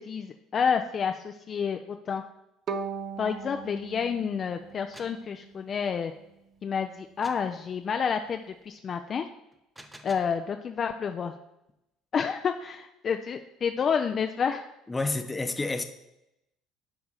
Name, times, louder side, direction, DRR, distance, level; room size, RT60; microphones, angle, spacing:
voice 1, 0.0-2.2 3.2-6.1 6.6-9.3 10.0-11.3 12.1-14.6, left 6 dB, 40° left, 5 dB, 0.5 m, -29 dB
Bowed string instrument, 2.7-5.7, right 5 dB, 45° right, 0.7 m, -38 dB
sound 1, 4.7-5.2 7.2-7.5 9.5-10.4, right 1 dB, 10° right, 0.8 m, -49 dB
voice 2, 14.9-15.8, left 2 dB, 15° left, 8 dB, 0.9 m, -29 dB
9.8 x 3.5 x 5.6 m, 0.87 s
figure-of-eight pair, 60°, 0 cm